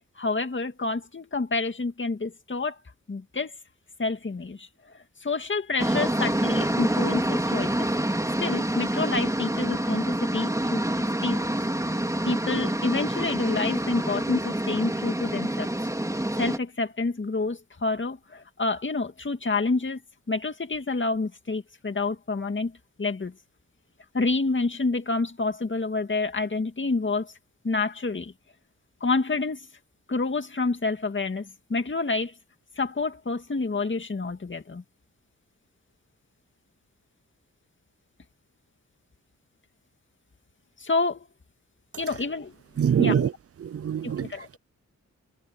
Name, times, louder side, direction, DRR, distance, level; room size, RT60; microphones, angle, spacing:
voice 1, 0.2-2.8 3.1-3.5 4.0-7.9 8.4-10.8 11.2-11.5 12.3-15.7 16.4-20.0 20.3-22.7 23.0-23.3 24.1-27.3 27.6-28.3 29.0-29.7 30.1-32.3 32.8-34.8 40.8-41.3 42.0-42.5 43.0-43.3 44.0-44.5, left 3 dB, 35° left, 2.1 m, -28 dB
sound 1, 5.8-16.6, right 1 dB, 10° right, 3.6 m, -27 dB
voice 2, 42.8-43.3 43.7-44.3, right 8 dB, 45° right, 0.5 m, -23 dB
wide cardioid pair, 80°, 32 cm